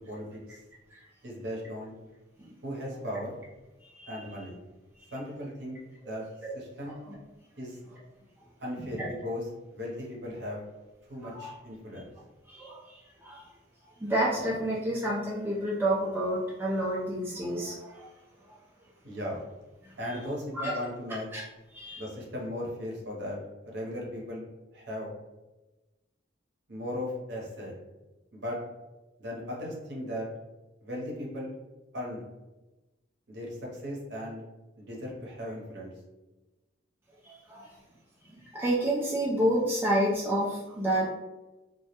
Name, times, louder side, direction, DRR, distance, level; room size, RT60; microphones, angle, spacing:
voice 1, 0.1-0.6 1.2-1.9 2.6-3.3 4.1-4.6 5.1-5.8 6.1-6.2 6.5-7.0 7.6-7.8 8.6-9.4 9.7-10.6 11.1-12.1 19.0-19.4 20.0-21.3 22.0-23.4 23.7-24.5 24.7-25.1 26.7-27.7 28.3-28.6 29.2-30.3 30.8-31.5 31.9-32.2 33.3-34.4 34.8-35.9, left 1 dB, 60° right, -3 dB, 0.7 m, -37 dB
voice 2, 11.2-11.5 12.5-13.5 14.0-18.1 18.4-18.6 19.9-20.0 20.5-20.8 21.3-21.4 21.7-22.1 37.2-37.7 38.4-41.1, right 1 dB, 10° right, -6 dB, 0.3 m, -30 dB
2.2 x 2.1 x 2.8 m, 1.1 s
head